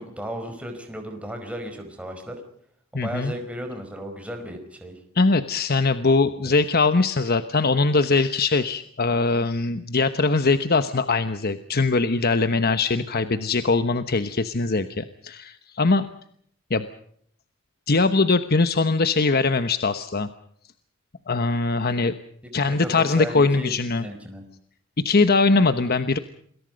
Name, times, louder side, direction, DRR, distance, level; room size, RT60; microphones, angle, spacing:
voice 1, 0.0-2.4 2.9-5.0 6.4-6.6 22.7-24.4, equal, 5° right, 4 dB, 5.0 m, -35 dB
voice 2, 2.9-3.3 5.2-16.1 16.7-16.9 17.9-20.3 21.3-22.1 22.5-24.0 25.0-26.2, left 3 dB, 50° left, 10 dB, 1.1 m, -21 dB
28.5 x 22.0 x 5.3 m, 0.66 s
head